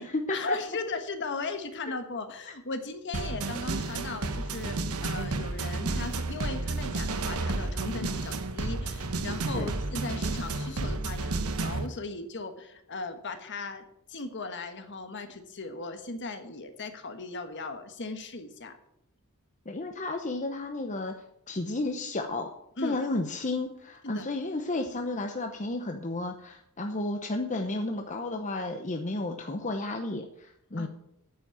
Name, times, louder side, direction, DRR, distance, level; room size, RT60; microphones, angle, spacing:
voice 1, 0.3-18.8 22.8-23.0 24.0-24.2 30.8-30.9, left 3 dB, 55° left, 7 dB, 1.4 m, -37 dB
sound 1, 3.1-11.9, right 3 dB, 80° right, 1.1 m, -31 dB
voice 2, 19.7-21.1 21.5-22.5 22.8-30.9, left 2 dB, 35° left, 4 dB, 0.9 m, -32 dB
9.3 x 7.6 x 8.5 m, 0.76 s
head